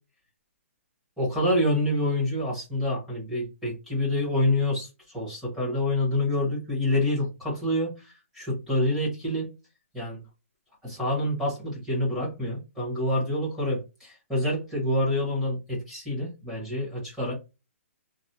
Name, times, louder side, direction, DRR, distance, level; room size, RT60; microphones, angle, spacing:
voice 1, 1.2-9.5 9.9-10.2 10.8-17.3, left 1 dB, ahead, -6 dB, 1.4 m, -27 dB
3.0 x 2.3 x 2.7 m, 0.26 s
hypercardioid pair, 175°, 8 cm